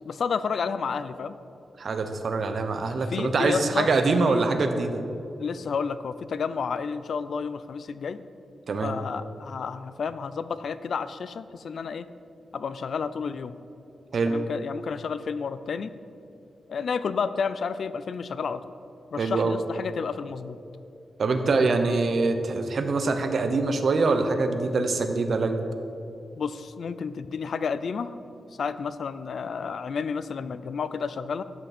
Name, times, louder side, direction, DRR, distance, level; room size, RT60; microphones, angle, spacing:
voice 1, 0.1-1.3 3.1-3.9 4.2-4.4 5.4-8.3 8.8-12.1 12.5-13.6 14.3-15.9 16.7-18.7 19.1-20.6 26.4-28.1 28.6-31.4, left 5 dB, 70° left, 13 dB, 0.4 m, -31 dB
voice 2, 1.8-5.0 8.7-8.9 14.1-14.4 19.2-19.6 21.2-25.6, right 3 dB, 60° right, 7 dB, 0.9 m, -24 dB
13.0 x 9.1 x 4.3 m, 2.7 s
cardioid pair, 95°, 0 cm